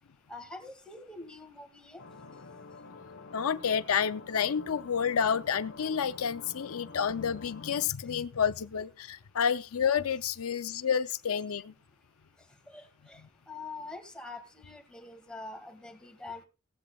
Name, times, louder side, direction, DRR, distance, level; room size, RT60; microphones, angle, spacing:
voice 1, 0.3-2.0 12.7-16.5, left 3 dB, 5° left, 2.2 m, -45 dB
sound 1, 2.0-7.9, left 3 dB, 65° left, 1.2 m, -48 dB
voice 2, 3.3-11.7, left 7 dB, 80° left, 0.5 m, -29 dB
17.0 x 15.0 x 2.3 m
head